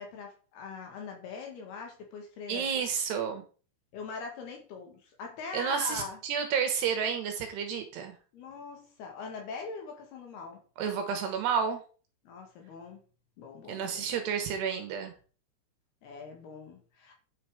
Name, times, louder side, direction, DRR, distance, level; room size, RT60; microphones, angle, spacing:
voice 1, 0.0-2.9 3.9-6.2 8.3-10.6 12.3-13.0 13.4-14.5 16.0-17.1, left 4 dB, 65° left, 3.6 m, -42 dB
voice 2, 2.5-3.4 5.5-8.1 10.8-11.8 13.7-15.1, right 7 dB, 70° right, 2.9 m, -30 dB
9.7 x 5.8 x 4.9 m
omnidirectional pair, 5.5 m